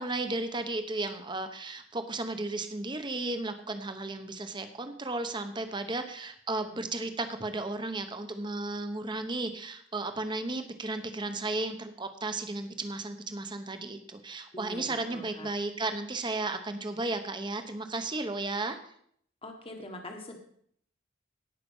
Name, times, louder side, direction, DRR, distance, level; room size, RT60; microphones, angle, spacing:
voice 1, 0.0-18.8, right 2 dB, 25° right, 8 dB, 1.0 m, -34 dB
voice 2, 14.5-15.5 19.4-20.4, left 1 dB, 25° left, 3 dB, 1.3 m, -43 dB
17.0 x 5.8 x 5.5 m, 0.66 s
head